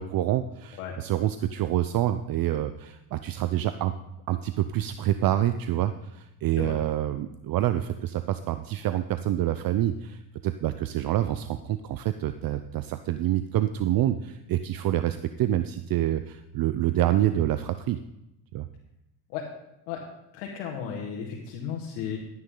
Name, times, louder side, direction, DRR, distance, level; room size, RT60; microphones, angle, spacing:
voice 1, 0.0-3.9 4.3-18.0 18.5-18.7, right 12 dB, 50° right, 10 dB, 0.6 m, -27 dB
voice 2, 20.3-22.2, left 8 dB, 85° left, -1 dB, 1.9 m, -34 dB
12.5 x 9.4 x 3.9 m, 0.89 s
supercardioid pair, 95°, 45 cm